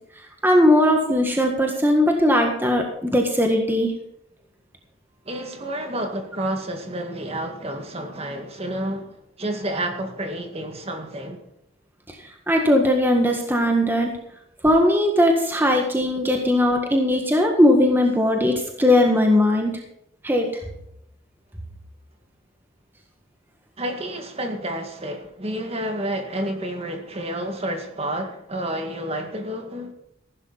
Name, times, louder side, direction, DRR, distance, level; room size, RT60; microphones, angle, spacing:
voice 1, 0.4-3.9 12.1-12.2 12.5-14.1 14.6-19.8 20.2-20.5, left 1 dB, 10° right, 1.7 m, -19 dB
voice 2, 5.3-11.4 23.8-29.9, right 1 dB, 30° right, 2.0 m, -30 dB
15.5 x 12.0 x 4.1 m
head